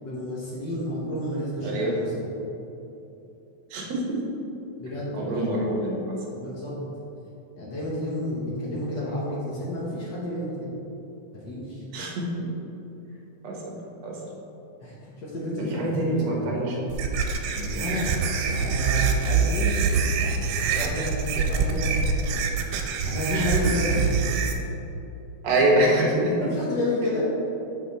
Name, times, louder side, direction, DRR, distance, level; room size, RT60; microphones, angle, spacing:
voice 1, 0.0-2.3 4.8-5.6 6.3-6.7 7.6-10.7 11.3-11.9 14.8-16.6 17.5-18.2 18.6-19.9 20.7-22.0 23.0-24.1 26.4-27.2, left 1 dB, 60° left, -6 dB, 1.1 m, -30 dB
voice 2, 1.6-2.0 3.7-4.4 5.1-6.2 11.9-12.5 13.4-13.8 14.0-14.2 15.6-16.8 23.3-23.4 25.4-26.5, right 1 dB, 65° right, -2 dB, 2.1 m, -25 dB
sound 1, 16.9-24.5, right 5 dB, 85° right, 2.0 m, -25 dB
6.4 x 6.0 x 4.2 m, 3.0 s
omnidirectional pair, 3.4 m